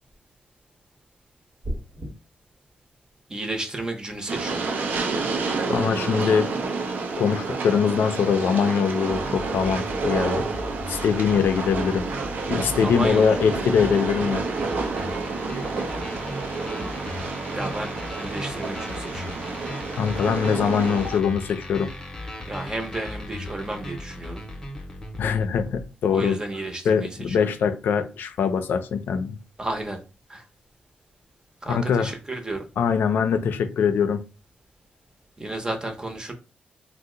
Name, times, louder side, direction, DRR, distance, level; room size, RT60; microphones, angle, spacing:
sound 1, 1.6-2.1, equal, 50° right, 1.2 m, -31 dB
voice 1, 3.3-5.0 12.7-13.3 17.5-19.6 22.5-24.4 26.1-27.5 29.6-30.0 30.3-30.4 31.6-32.6 35.4-36.3, right 2 dB, 20° right, 0.6 m, -32 dB
Train, 4.3-21.2, right 4 dB, 65° right, 0.5 m, -29 dB
voice 2, 5.7-6.5 7.2-10.4 10.9-12.0 12.5-14.4 19.9-21.9 25.2-26.4 26.8-29.4 31.7-32.1 32.8-34.2, left 6 dB, 80° left, 0.4 m, -22 dB
sound 2, 9.1-25.8, left 1 dB, 15° left, 0.6 m, -37 dB
2.7 x 2.0 x 3.6 m
cardioid pair, 105°, 3 cm